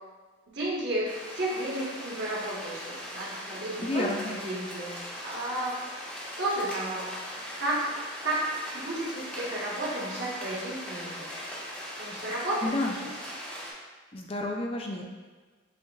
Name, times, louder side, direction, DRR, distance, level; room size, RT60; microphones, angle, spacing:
voice 1, 0.5-5.0 5.2-5.8 6.4-7.1 7.6-7.9 8.2-8.5 8.7-11.3 12.0-13.1, right 1 dB, 55° right, -5 dB, 1.2 m, -32 dB
sound 1, 1.0-13.7, equal, 5° left, 0.8 m, -40 dB
voice 2, 3.8-4.3 12.6-12.9 14.1-15.0, left 2 dB, 30° left, 1 dB, 0.5 m, -30 dB
7.6 x 2.8 x 2.3 m, 1.4 s
head